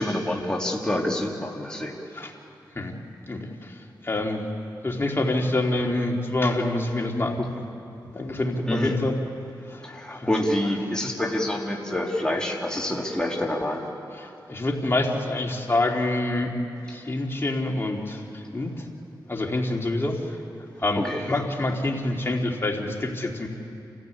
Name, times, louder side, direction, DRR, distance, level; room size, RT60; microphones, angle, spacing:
voice 1, 0.0-2.0 8.7-9.0 9.8-13.9 21.0-21.3, left 1 dB, 10° left, -1 dB, 2.9 m, -27 dB
voice 2, 3.3-4.4 4.8-7.6 8.1-9.2 9.7-10.3 14.2-16.5 16.9-18.8 19.3-20.4 20.8-23.5, left 2 dB, 30° left, 0 dB, 3.4 m, -27 dB
29.0 x 15.0 x 8.7 m, 2.6 s
cardioid pair, 60°, 8 cm